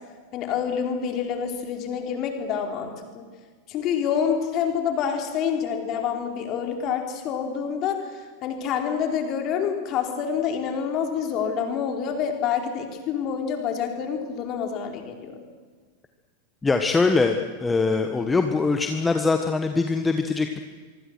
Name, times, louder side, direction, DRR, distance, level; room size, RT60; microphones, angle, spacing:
voice 1, 0.3-3.3 3.7-15.4, left 7 dB, 35° left, 3 dB, 4.5 m, -27 dB
voice 2, 16.6-20.6, left 4 dB, 10° left, 6 dB, 1.5 m, -22 dB
25.5 x 24.0 x 6.4 m, 1.5 s
figure-of-eight pair, 90°, 0 cm